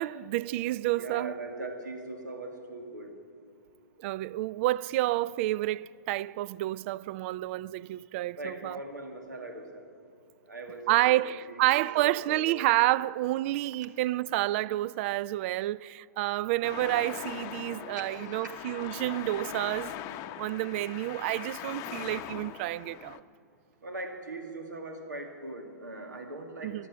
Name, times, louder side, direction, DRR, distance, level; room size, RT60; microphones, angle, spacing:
voice 1, 0.0-1.4 4.0-8.8 10.9-19.9 20.4-23.2 26.6-26.9, right 16 dB, 45° right, 0.3 m, -29 dB
voice 2, 1.0-3.2 8.4-9.9 10.5-12.6 13.0-13.1 18.0-18.5 23.8-26.9, right 2 dB, 90° right, 2.2 m, -41 dB
Traffic noise roadway noise, 16.6-23.2, left 11 dB, 35° left, 0.7 m, -41 dB
15.0 x 11.5 x 7.4 m
hypercardioid pair, 120°, 10 cm